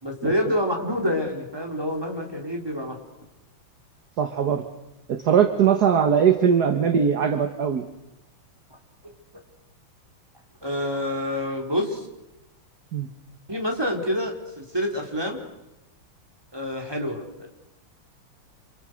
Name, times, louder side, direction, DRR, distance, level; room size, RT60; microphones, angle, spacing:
voice 1, 0.0-3.0 10.6-12.0 13.5-15.4 16.5-17.5, left 1 dB, 10° right, 1 dB, 4.3 m, -27 dB
voice 2, 4.2-4.6 5.1-7.8 12.9-13.1, right 7 dB, 50° right, 7 dB, 1.7 m, -20 dB
29.0 x 28.0 x 6.5 m, 0.92 s
omnidirectional pair, 2.3 m